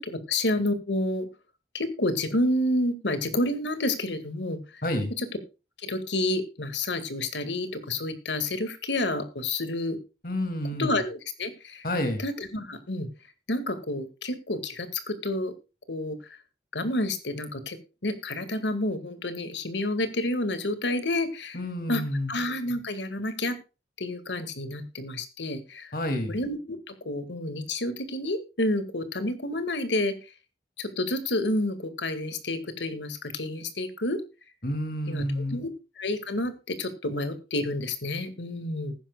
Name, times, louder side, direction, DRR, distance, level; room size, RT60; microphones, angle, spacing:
voice 1, 0.3-1.3 1.7-4.6 5.2-5.3 5.8-10.0 10.8-11.8 12.2-13.1 13.5-15.5 15.9-16.2 16.7-17.8 18.0-21.6 21.9-22.0 22.3-23.6 24.0-25.9 26.3-30.1 30.8-34.2 35.1-35.7 36.0-38.9, left 1 dB, 85° left, 11 dB, 2.0 m, -29 dB
voice 2, 10.2-11.0 11.8-12.2 21.5-22.3 25.9-26.3 34.6-35.6, left 1 dB, 50° left, 7 dB, 2.5 m, -29 dB
20.0 x 10.0 x 2.3 m, 0.30 s
head